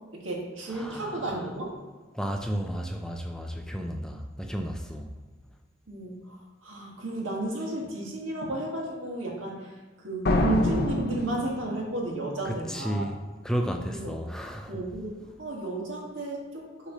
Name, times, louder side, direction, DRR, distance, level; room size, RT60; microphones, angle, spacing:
voice 1, 0.1-1.7 5.9-13.1 13.9-14.1 14.7-16.9, right 2 dB, 85° right, -2 dB, 1.6 m, -33 dB
voice 2, 0.7-1.5 2.1-5.1 12.5-13.2 13.4-14.8, equal, 5° left, 3 dB, 0.4 m, -33 dB
sound 1, 10.3-12.1, left 2 dB, 55° left, 0.8 m, -26 dB
6.5 x 3.2 x 5.4 m, 1.3 s
head